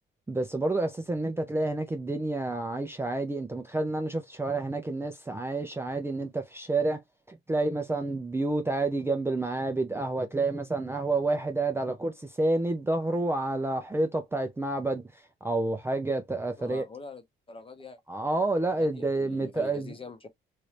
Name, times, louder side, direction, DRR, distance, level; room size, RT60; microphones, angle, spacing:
voice 1, 0.3-7.0 7.3-16.8 18.1-19.9, right 2 dB, 10° right, 0.5 m, -29 dB
voice 2, 16.6-18.0 18.8-20.3, left 3 dB, 25° left, 0.8 m, -44 dB
3.1 x 2.6 x 3.2 m
cardioid pair, 120°, 21 cm